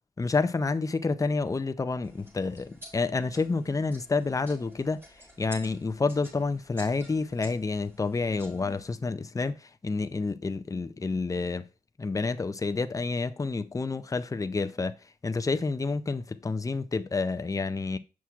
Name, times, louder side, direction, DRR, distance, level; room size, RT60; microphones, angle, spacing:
voice 1, 0.2-11.7 12.0-15.0 15.2-18.0, left 3 dB, 20° left, 0.4 m, -29 dB
sound 1, 2.0-9.0, equal, 15° right, 4.1 m, -51 dB
7.2 x 5.8 x 2.4 m
cardioid pair, 60°, 16 cm